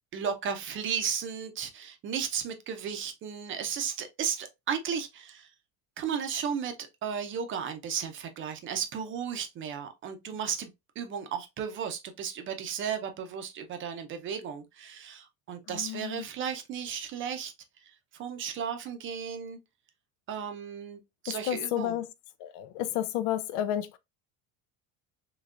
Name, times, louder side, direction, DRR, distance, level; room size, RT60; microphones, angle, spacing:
voice 1, 0.1-5.5 6.0-6.7 7.0-17.5 17.8-19.6 20.3-22.0, right 7 dB, 30° right, 0.6 m, -34 dB
voice 2, 15.7-16.3 21.4-22.1 22.4-24.0, left 11 dB, 80° left, 0.6 m, -31 dB
3.6 x 3.2 x 2.4 m
cardioid pair, 160°, 39 cm